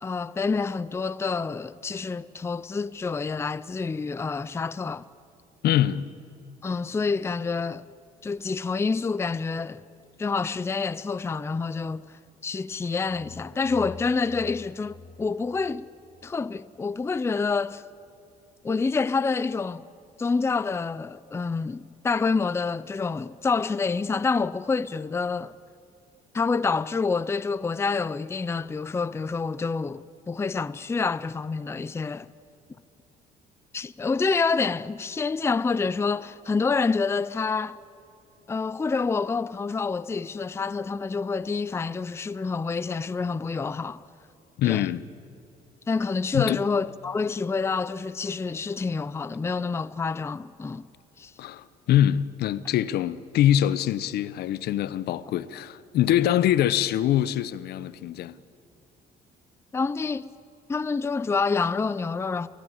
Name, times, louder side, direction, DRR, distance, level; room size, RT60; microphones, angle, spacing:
voice 1, 0.0-5.1 6.6-7.8 8.2-9.8 10.2-12.0 12.4-15.9 16.2-17.8 18.6-19.8 20.2-25.6 26.3-32.3 33.7-37.8 38.5-44.0 44.6-44.9 45.9-50.8 51.2-51.3 59.7-60.3 60.7-62.5, left 4 dB, 15° left, 0.5 m, -27 dB
voice 2, 5.6-6.1 44.6-45.0 46.3-46.6 51.4-58.4, left 11 dB, 70° left, 0.8 m, -24 dB
sound 1, 12.8-16.4, left 5 dB, 55° left, 2.1 m, -46 dB
29.5 x 15.5 x 8.8 m
cardioid pair, 110°, 17 cm